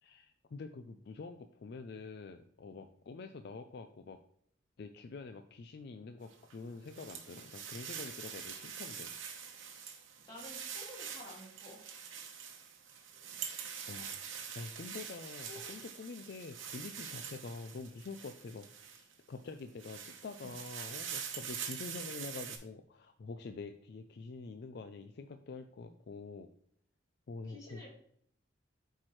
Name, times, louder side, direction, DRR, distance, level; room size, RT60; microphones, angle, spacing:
voice 1, 0.0-4.2 4.8-9.1 13.5-14.2 14.5-26.5 27.3-27.9, left 4 dB, 55° left, 7 dB, 0.4 m, -46 dB
sound 1, 6.3-19.1 19.6-22.6, right 7 dB, 90° right, 1.0 m, -45 dB
voice 2, 10.3-11.9 15.5-15.7 27.4-27.9, left 2 dB, 20° left, -6 dB, 2.7 m, -51 dB
7.4 x 4.6 x 3.1 m, 0.65 s
head